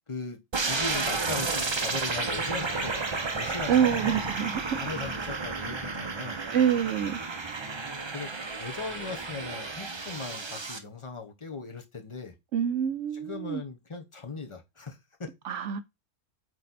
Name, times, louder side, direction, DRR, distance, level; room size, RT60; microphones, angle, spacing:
voice 1, 0.1-4.2 4.7-6.4 8.1-8.3 8.6-12.3 13.1-15.3, left 4 dB, 25° left, 0.9 m, -39 dB
sound 1, 0.5-10.8, right 4 dB, 35° right, 0.4 m, -32 dB
voice 2, 3.7-4.8 6.5-7.2 12.5-13.6 15.4-15.8, right 8 dB, 65° right, 0.9 m, -26 dB
8.3 x 3.2 x 4.1 m
omnidirectional pair, 1.5 m